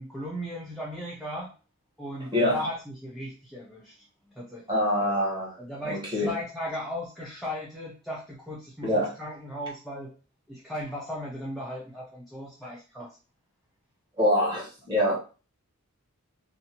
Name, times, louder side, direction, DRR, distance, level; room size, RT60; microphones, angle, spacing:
voice 1, 0.0-1.5 2.0-3.9 4.2-4.8 5.6-10.1 10.5-13.2, left 1 dB, ahead, -5 dB, 0.4 m, -37 dB
voice 2, 2.3-2.7 4.7-5.6 5.8-6.3 8.8-9.1 14.2-15.2, equal, 20° right, -5 dB, 1.1 m, -25 dB
2.7 x 2.1 x 2.8 m, 0.34 s
head